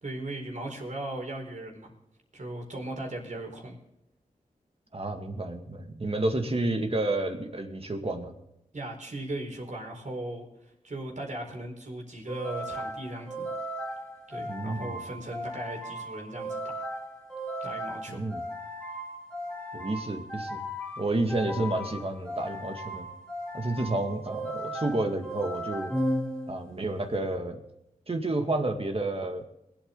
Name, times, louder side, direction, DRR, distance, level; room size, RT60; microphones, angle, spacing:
voice 1, 0.0-1.9 2.3-3.7 8.7-10.5 10.8-13.5 14.3-16.8 17.6-18.2 23.6-23.9, right 1 dB, 55° right, 1 dB, 4.4 m, -38 dB
voice 2, 4.9-8.3 14.4-15.0 18.1-18.5 19.7-20.6 21.0-23.1 23.5-25.9 26.5-27.6 28.1-29.4, right 2 dB, 40° right, 4 dB, 2.0 m, -30 dB
sound 1, 12.3-26.8, equal, 5° left, 3.5 m, -36 dB
21.5 x 8.8 x 3.9 m, 0.84 s
cardioid pair, 55°, 15 cm